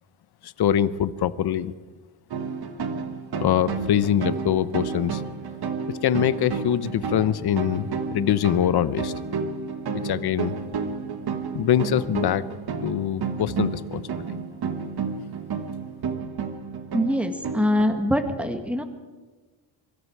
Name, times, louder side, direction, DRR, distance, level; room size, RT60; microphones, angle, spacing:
voice 1, 0.4-1.7 3.4-5.2 5.8-9.1 9.9-10.5 11.5-12.5 12.8-14.4, left 10 dB, 55° left, 15 dB, 1.0 m, -24 dB
sound 1, 2.3-17.8, right 5 dB, 50° right, 1.7 m, -31 dB
voice 2, 16.9-18.8, equal, 5° right, 6 dB, 1.9 m, -23 dB
25.5 x 23.5 x 4.8 m, 1.3 s
cardioid pair, 130°, 47 cm